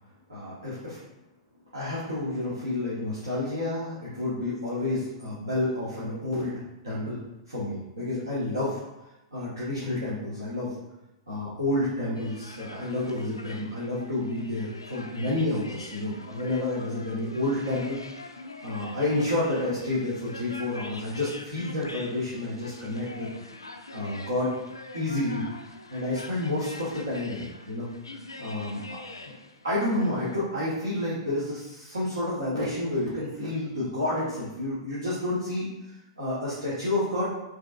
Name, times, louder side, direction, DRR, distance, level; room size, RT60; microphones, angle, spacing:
voice 1, 0.3-1.0 1.7-8.8 9.3-10.8 11.3-18.0 18.6-23.4 23.9-24.6 24.9-25.4 25.9-29.0 29.6-37.3, left 1 dB, 80° right, -10 dB, 1.2 m, -30 dB
sound 1, 12.1-30.4, left 2 dB, 85° left, 0.3 m, -44 dB
4.5 x 3.1 x 2.5 m, 0.95 s
figure-of-eight pair, 100°, 2 cm